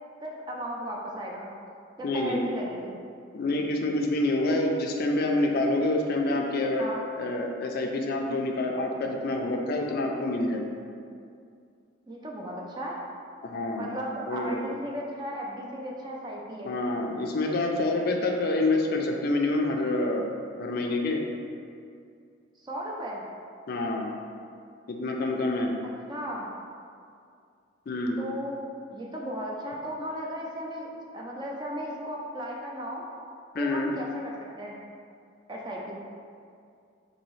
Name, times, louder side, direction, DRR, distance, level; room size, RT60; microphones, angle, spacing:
voice 1, 0.2-1.5 2.0-2.9 6.8-7.0 12.1-13.0 13.8-16.7 22.6-23.2 26.1-26.5 28.2-28.6 28.9-30.9 31.1-33.0 33.6-34.8 35.5-36.0, equal, 20° right, -2 dB, 0.4 m, -35 dB
voice 2, 2.0-2.4 3.3-6.9 7.2-10.7 13.4-13.9 14.3-14.6 16.7-20.3 20.6-21.2 23.7-24.1 24.9-25.8 27.9-28.2 33.5-33.9, left 2 dB, 50° left, 2 dB, 0.3 m, -27 dB
4.0 x 2.6 x 3.1 m, 2.4 s
head